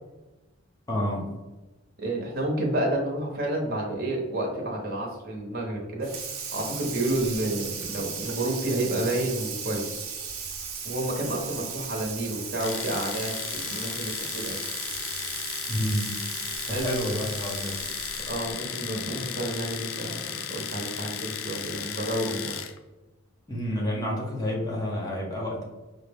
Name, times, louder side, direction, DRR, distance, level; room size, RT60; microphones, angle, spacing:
voice 1, 0.9-1.3 15.7-16.2 16.8-17.8 23.5-25.6, equal, 15° left, -2 dB, 0.6 m, -29 dB
voice 2, 2.0-6.1 6.5-10.1 10.8-14.6 16.6-17.0 18.3-22.5, right 1 dB, 45° right, 0 dB, 0.8 m, -30 dB
Water tap faucet / Sink (filling or washing), 6.0-18.5, right 6 dB, 80° right, 0.7 m, -36 dB
Domestic sounds home sounds, 12.6-22.8, left 9 dB, 65° left, 0.4 m, -35 dB
5.4 x 2.1 x 3.4 m, 1.1 s
head